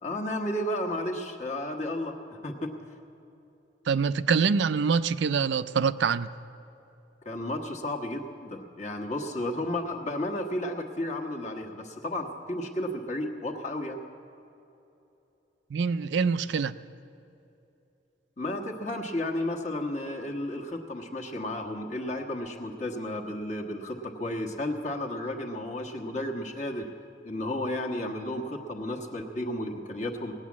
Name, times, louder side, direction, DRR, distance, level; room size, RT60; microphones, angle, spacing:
voice 1, 0.0-2.8 7.2-14.0 18.4-26.9 27.2-30.3, left 1 dB, 40° left, 1 dB, 1.3 m, -33 dB
voice 2, 3.9-6.3 15.7-16.8, right 5 dB, 75° right, 13 dB, 0.4 m, -25 dB
18.0 x 9.6 x 7.3 m, 2.9 s
head